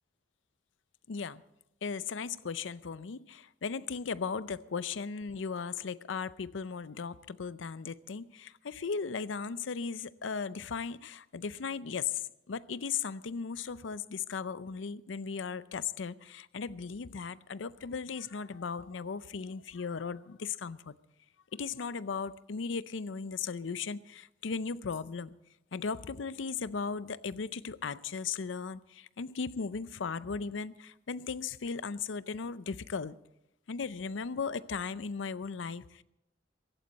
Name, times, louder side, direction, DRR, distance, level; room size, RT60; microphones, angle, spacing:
voice 1, 1.1-1.4 1.8-20.9 21.5-25.3 25.7-33.2 33.7-36.0, left 5 dB, 80° left, 0.5 m, -37 dB
16.5 x 16.0 x 4.1 m
head